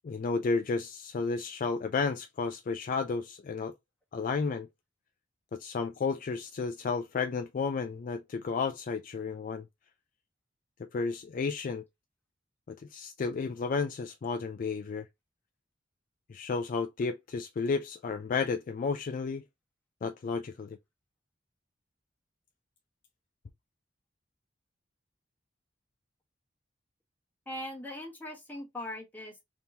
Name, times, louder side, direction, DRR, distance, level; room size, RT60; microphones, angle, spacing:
voice 1, 0.0-3.7 4.1-4.7 5.5-9.7 10.9-11.8 12.7-15.1 16.3-19.4 20.0-20.8, left 4 dB, 45° left, 0.3 m, -32 dB
voice 2, 27.5-29.4, left 1 dB, 10° left, 1.2 m, -40 dB
3.5 x 2.9 x 2.6 m
head